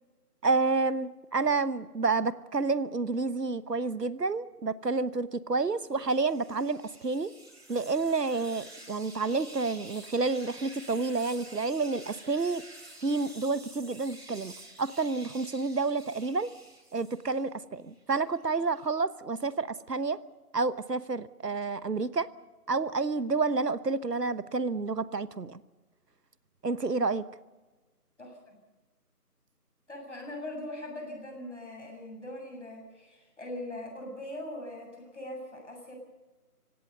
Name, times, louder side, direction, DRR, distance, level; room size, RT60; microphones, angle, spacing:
voice 1, 0.4-7.3 7.7-12.6 13.0-14.5 14.8-16.5 16.9-20.2 20.5-22.3 22.7-25.6 26.6-27.3, right 3 dB, 80° right, 16 dB, 1.2 m, -29 dB
sound 1, 5.8-17.5 17.9-18.9, right 1 dB, 40° right, 4.4 m, -50 dB
voice 2, 28.2-28.6 29.9-35.9, left 1 dB, 45° left, 1 dB, 7.6 m, -41 dB
27.0 x 17.0 x 6.9 m, 1.2 s
figure-of-eight pair, 175°, 47 cm